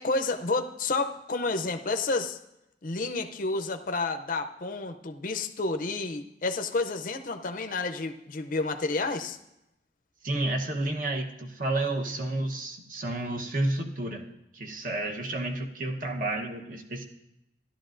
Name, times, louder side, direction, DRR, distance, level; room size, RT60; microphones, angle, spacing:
voice 1, 0.0-2.4 2.8-9.4, left 3 dB, 50° left, 6 dB, 0.5 m, -30 dB
voice 2, 10.2-14.3 14.5-17.0, right 2 dB, 45° right, 3 dB, 1.0 m, -31 dB
14.5 x 11.5 x 2.6 m, 0.86 s
head